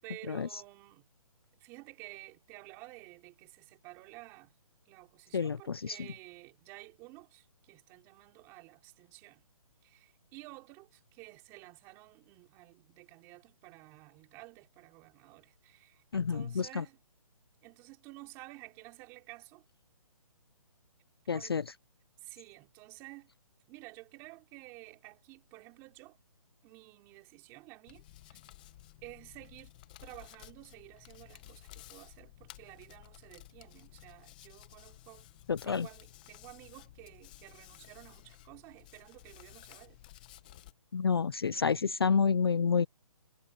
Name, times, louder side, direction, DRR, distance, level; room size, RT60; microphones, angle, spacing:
voice 1, 0.0-1.1 1.5-4.5 4.8-9.4 9.8-17.0 17.6-19.6 21.3-21.6 22.2-23.3 23.7-26.2 26.6-28.4 29.0-29.7 30.0-35.3 35.6-40.0, right 22 dB, 15° right, 5.1 m, -52 dB
voice 2, 5.3-6.0 16.1-16.8 21.3-21.6 35.5-35.9 40.9-42.9, left 6 dB, 40° left, 0.4 m, -29 dB
Hands, 27.9-40.7, left 15 dB, 15° left, 1.1 m, -55 dB
hypercardioid pair, 175°, 19 cm